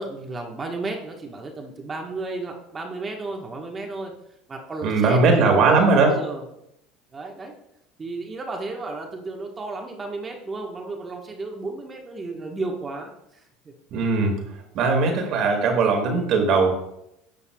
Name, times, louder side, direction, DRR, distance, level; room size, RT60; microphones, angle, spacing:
voice 1, 0.0-4.1 4.5-6.4 7.1-7.5 8.0-13.7, right 3 dB, 25° right, 2 dB, 1.2 m, -33 dB
voice 2, 4.8-6.1 13.9-14.4 14.7-16.7, right 4 dB, 55° right, 2 dB, 1.9 m, -19 dB
11.0 x 6.7 x 2.3 m, 0.80 s
supercardioid pair, 100°, 0 cm